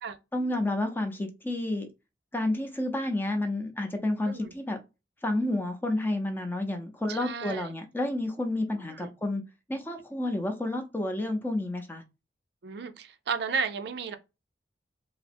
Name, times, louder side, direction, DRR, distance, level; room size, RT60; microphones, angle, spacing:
voice 1, 0.3-1.9 2.3-4.8 5.2-9.4 9.7-12.0, left 1 dB, 10° left, 0.6 m, -30 dB
voice 2, 7.1-7.7 8.8-9.1 12.6-14.2, right 5 dB, 65° right, 0.4 m, -33 dB
3.3 x 2.0 x 4.2 m
head